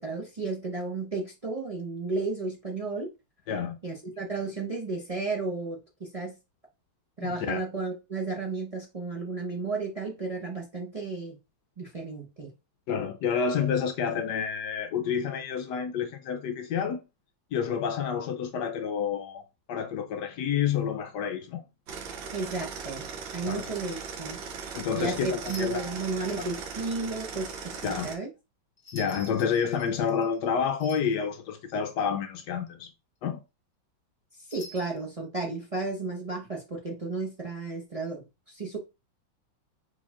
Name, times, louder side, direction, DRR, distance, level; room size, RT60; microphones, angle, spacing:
voice 1, 0.0-3.1 3.8-6.4 7.2-11.4 11.8-12.5 22.3-24.4 24.9-28.3 34.5-38.8, right 3 dB, 55° right, 0.4 m, -33 dB
voice 2, 3.5-3.8 7.2-7.6 12.9-17.0 17.5-19.4 19.7-21.6 23.4-23.6 24.7-26.0 26.4-26.5 27.8-28.1 28.9-32.9 33.2-33.4, left 7 dB, 75° left, 1.0 m, -29 dB
sound 1, 21.9-28.2, right 5 dB, 75° right, 1.5 m, -39 dB
sound 2, 25.4-26.0 28.8-30.5 30.8-31.3 34.5-35.1, equal, 50° left, 0.6 m, -47 dB
4.6 x 2.4 x 4.2 m
omnidirectional pair, 2.2 m